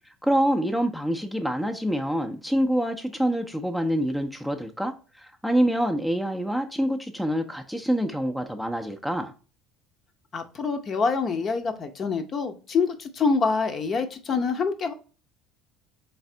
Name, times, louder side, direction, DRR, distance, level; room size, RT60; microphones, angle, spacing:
voice 1, 0.2-9.3, equal, ahead, 0.5 m, -26 dB
voice 2, 10.3-14.9, left 4 dB, 35° left, 0.7 m, -26 dB
4.0 x 3.4 x 3.8 m
figure-of-eight pair, 65°, 0 cm